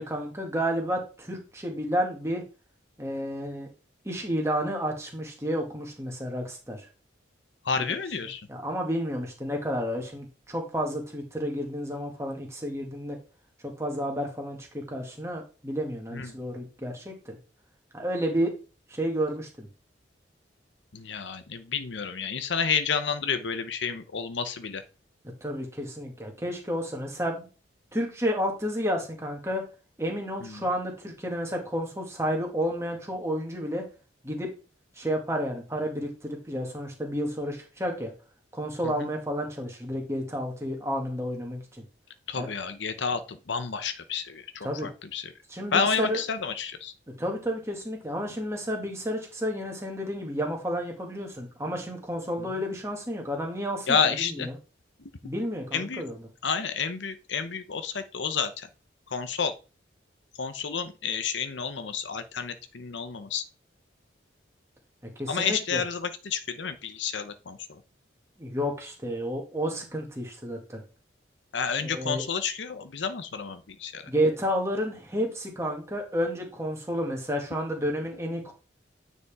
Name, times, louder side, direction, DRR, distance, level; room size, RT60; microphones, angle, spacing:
voice 1, 0.0-2.4 3.0-3.7 4.0-6.9 7.7-13.2 13.6-17.4 17.9-18.5 18.9-19.7 25.4-27.5 27.9-29.6 30.0-33.8 34.2-34.5 35.0-38.1 38.5-41.8 42.3-42.5 44.6-44.9 45.5-46.2 47.2-54.6 55.2-56.3 65.2-65.8 68.4-70.8 71.8-72.2 74.1-78.5, equal, 15° right, 1 dB, 2.0 m, -31 dB
voice 2, 7.7-8.4 16.1-16.3 20.9-24.8 42.3-45.2 45.7-46.9 53.9-54.5 55.7-56.0 56.4-58.5 59.1-59.5 60.4-63.4 65.3-67.6 71.5-74.0, left 6 dB, 75° left, 10 dB, 0.8 m, -30 dB
9.5 x 5.3 x 3.6 m, 0.33 s
head